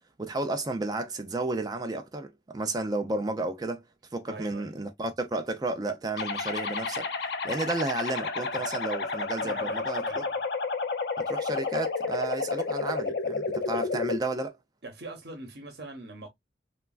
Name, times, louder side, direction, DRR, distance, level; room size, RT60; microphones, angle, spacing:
voice 1, 0.2-3.8 4.1-7.1 7.4-10.2 11.2-14.6, right 2 dB, 20° right, 0.3 m, -32 dB
voice 2, 4.3-4.8 9.4-10.3 13.7-13.8 14.8-16.3, right 2 dB, 60° right, 0.8 m, -42 dB
sound 1, 6.2-14.2, left 4 dB, 65° left, 0.5 m, -31 dB
3.1 x 2.3 x 2.3 m
head